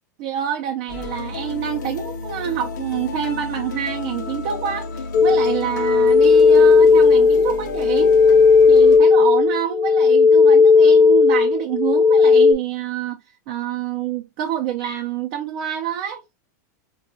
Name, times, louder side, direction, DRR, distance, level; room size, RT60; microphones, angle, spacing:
voice 1, 0.2-8.1 8.7-13.2 13.5-16.2, right 9 dB, 50° right, 0.5 m, -27 dB
sound 1, 0.9-9.0, left 3 dB, 90° left, 0.6 m, -31 dB
sound 2, 5.1-12.5, left 5 dB, 45° left, 0.5 m, -14 dB
4.4 x 2.3 x 2.6 m
supercardioid pair, 145°, 10 cm